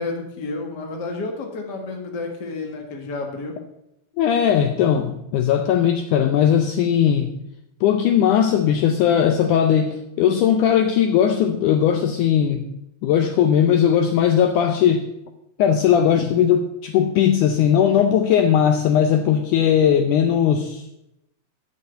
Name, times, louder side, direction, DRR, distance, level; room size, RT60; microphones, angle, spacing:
voice 1, 0.0-3.6, left 3 dB, 45° left, 2 dB, 1.4 m, -30 dB
voice 2, 4.2-7.3 7.8-12.7 13.0-15.1 15.6-20.8, left 9 dB, 80° left, 6 dB, 1.8 m, -18 dB
12.0 x 4.8 x 7.9 m, 0.85 s
omnidirectional pair, 4.3 m